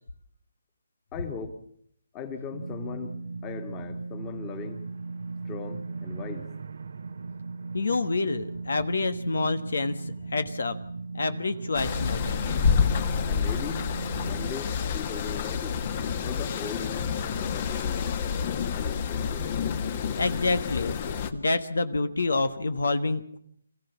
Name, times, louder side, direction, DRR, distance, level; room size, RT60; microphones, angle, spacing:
voice 1, 1.1-1.6 2.1-3.1 3.4-4.8 5.5-6.5 13.3-13.8 14.2-15.8 16.2-17.1 17.4-18.1 18.7-19.4 21.9-22.0, left 6 dB, 20° left, 7 dB, 2.1 m, -38 dB
sound 1, 2.5-14.5, right 3 dB, 70° right, 0.8 m, -37 dB
voice 2, 7.7-10.8 11.1-12.6 20.2-20.9 21.3-23.4, left 3 dB, 75° left, 11 dB, 1.4 m, -28 dB
sound 2, 11.7-21.3, left 6 dB, 35° left, 1.5 m, -28 dB
25.5 x 15.0 x 7.2 m, 0.68 s
hypercardioid pair, 155°, 0 cm